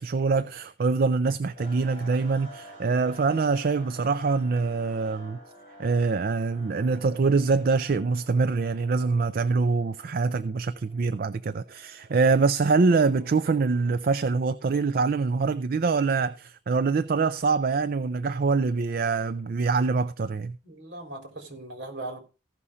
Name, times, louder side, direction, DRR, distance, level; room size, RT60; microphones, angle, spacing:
voice 1, 0.0-5.4 5.8-20.6, right 4 dB, 55° right, 0.4 m, -24 dB
sound 1, 1.5-13.9, equal, 30° right, 5.6 m, -50 dB
voice 2, 20.6-22.2, right 2 dB, 70° right, 3.4 m, -39 dB
15.0 x 5.7 x 4.9 m
head